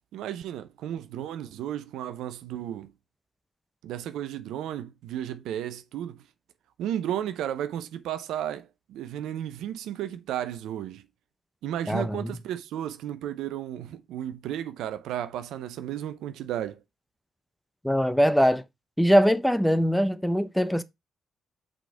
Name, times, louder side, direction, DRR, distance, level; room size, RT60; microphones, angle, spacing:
voice 1, 0.1-2.9 3.8-6.2 6.8-11.1 11.6-16.8, right 11 dB, 75° right, 0.6 m, -33 dB
voice 2, 11.9-12.3 17.8-18.6 19.0-20.8, equal, 5° left, 0.8 m, -22 dB
6.0 x 5.1 x 4.5 m
hypercardioid pair, 40°, 0 cm